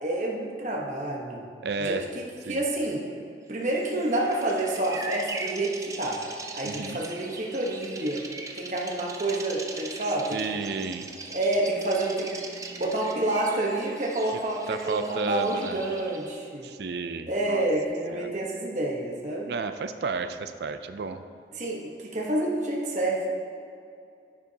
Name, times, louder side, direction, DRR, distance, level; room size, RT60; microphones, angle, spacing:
voice 1, 0.0-1.4 1.8-3.0 3.5-6.2 6.5-8.2 8.5-10.6 11.3-12.4 12.7-16.7 17.3-19.5 21.5-23.3, right 1 dB, 40° right, -3 dB, 1.0 m, -28 dB
voice 2, 1.6-2.0 2.5-2.6 6.6-7.0 10.3-11.1 14.7-15.8 16.6-17.6 18.1-18.3 19.5-21.2, right 4 dB, 70° right, 9 dB, 0.4 m, -32 dB
Bird vocalization bird call bird song, 3.7-16.4, right 3 dB, 20° right, 0.5 m, -40 dB
10.5 x 9.9 x 2.8 m, 2.4 s
head